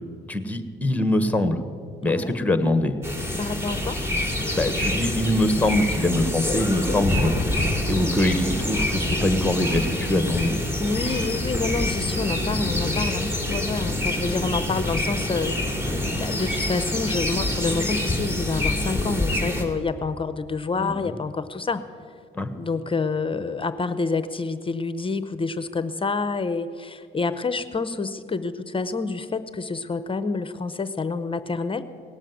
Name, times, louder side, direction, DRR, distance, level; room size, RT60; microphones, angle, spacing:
voice 1, 0.3-1.6 2.0-2.9 4.5-7.3 7.9-10.5 20.8-21.1 22.3-22.5, left 1 dB, 5° left, 10 dB, 1.2 m, -23 dB
voice 2, 2.1-2.4 3.4-4.0 10.8-21.8 22.5-31.8, left 4 dB, 25° left, 12 dB, 0.7 m, -28 dB
sound 1, 3.0-19.6, left 1 dB, 10° right, 2.6 m, -26 dB
18.0 x 7.4 x 9.3 m, 2.3 s
cardioid pair, 90°, 20 cm